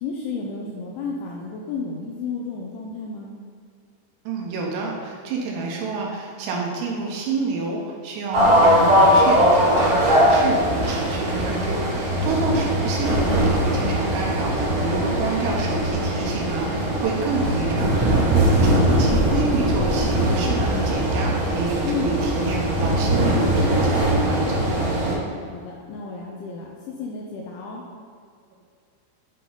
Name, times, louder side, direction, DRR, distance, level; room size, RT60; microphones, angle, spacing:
voice 1, 0.0-3.3 12.5-12.7 21.8-22.1 25.5-27.8, left 4 dB, 90° left, -2 dB, 2.6 m, -32 dB
voice 2, 4.3-24.7, right 3 dB, 80° right, -1 dB, 3.5 m, -29 dB
sound 1, 8.3-25.1, right 1 dB, 65° right, 2.3 m, -20 dB
9.6 x 3.7 x 3.9 m, 2.2 s
omnidirectional pair, 5.9 m